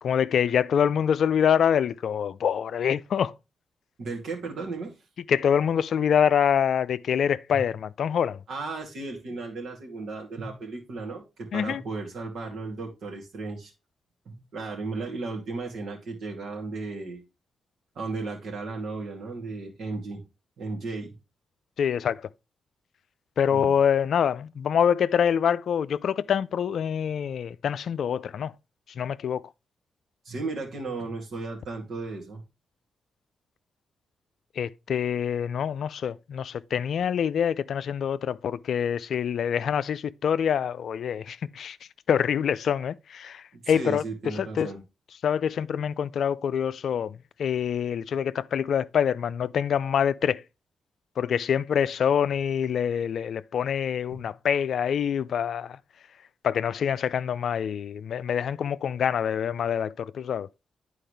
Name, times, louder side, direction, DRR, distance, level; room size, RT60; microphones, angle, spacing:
voice 1, 0.0-3.3 5.3-8.4 11.5-11.8 21.8-22.2 23.4-28.5 29.0-29.4 34.6-41.8 42.1-44.0 44.4-44.7 45.2-50.4 51.2-55.8 56.4-60.5, left 8 dB, 65° left, 0.4 m, -25 dB
voice 2, 4.0-4.9 8.5-13.7 14.2-17.2 17.9-20.2 20.6-21.1 23.5-23.7 30.2-32.4 43.5-44.8 54.1-54.2, right 3 dB, 70° right, 2.7 m, -35 dB
9.9 x 4.6 x 3.3 m
hypercardioid pair, 45°, 0 cm